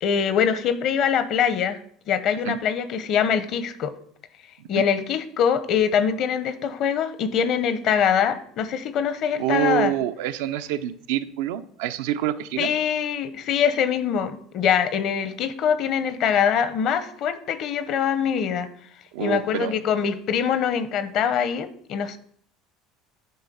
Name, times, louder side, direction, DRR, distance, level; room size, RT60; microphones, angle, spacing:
voice 1, 0.0-1.8 2.1-3.9 4.7-9.9 12.6-18.7 19.2-22.2, left 8 dB, 55° left, 13 dB, 0.9 m, -23 dB
voice 2, 9.4-12.7 19.1-19.7, right 12 dB, 85° right, 10 dB, 0.5 m, -26 dB
9.6 x 3.5 x 7.0 m, 0.63 s
supercardioid pair, 115°, 0 cm